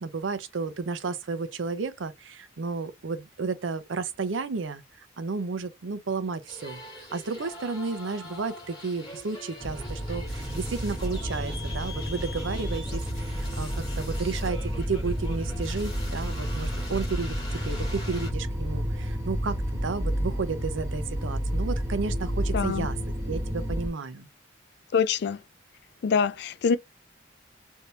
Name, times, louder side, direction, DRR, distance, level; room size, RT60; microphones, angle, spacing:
voice 1, 0.0-6.8 7.1-23.0 23.3-24.3, right 4 dB, 85° right, 0.6 m, -32 dB
sound 1, 6.5-18.3, left 1 dB, 20° left, 1.7 m, -42 dB
sound 2, 9.6-23.9, equal, 15° right, 1.0 m, -31 dB
voice 2, 22.5-22.9 24.9-25.4 26.0-26.8, left 6 dB, 60° left, 0.4 m, -24 dB
3.4 x 2.7 x 2.7 m
head